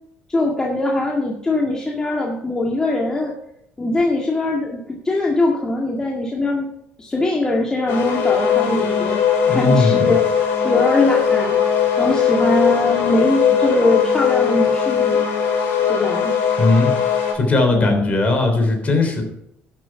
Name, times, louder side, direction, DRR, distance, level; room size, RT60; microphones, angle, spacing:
voice 1, 0.3-3.3 3.8-6.7 7.0-10.2 10.6-11.6 12.0-15.2 15.9-16.3 17.7-18.1, left 2 dB, 15° left, -1 dB, 1.9 m, -21 dB
sound 1, 7.9-17.3, left 7 dB, 65° left, 4.5 m, -19 dB
voice 2, 9.5-10.1 16.6-16.9 17.3-19.2, left 2 dB, 35° left, 5 dB, 3.4 m, -18 dB
12.0 x 7.7 x 5.8 m, 0.77 s
cardioid pair, 120°, 4 cm